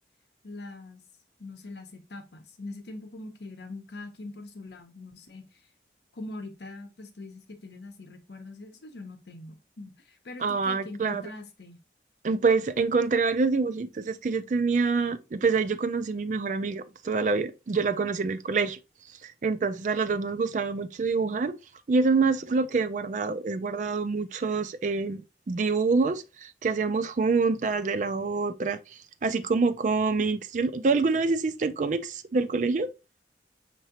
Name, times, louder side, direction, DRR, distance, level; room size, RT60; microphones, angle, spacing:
voice 1, 0.4-1.0 1.4-5.6 6.1-11.8, left 2 dB, 75° left, 0.8 m, -42 dB
voice 2, 10.4-11.2 12.2-18.8 19.2-21.6 21.9-28.8 29.2-32.9, right 4 dB, 45° right, 0.4 m, -26 dB
5.6 x 3.0 x 2.8 m
head